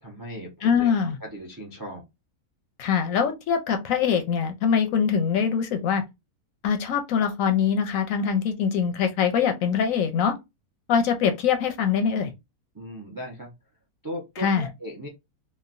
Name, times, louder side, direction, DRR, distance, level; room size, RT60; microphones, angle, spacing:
voice 1, 0.0-0.9 1.2-2.0 12.7-13.5 14.0-15.1, equal, 35° right, 0.3 m, -37 dB
voice 2, 0.6-1.2 2.8-6.0 6.6-10.3 10.9-12.3 14.4-14.7, left 7 dB, 70° left, 0.9 m, -23 dB
3.0 x 2.2 x 2.5 m
omnidirectional pair, 1.6 m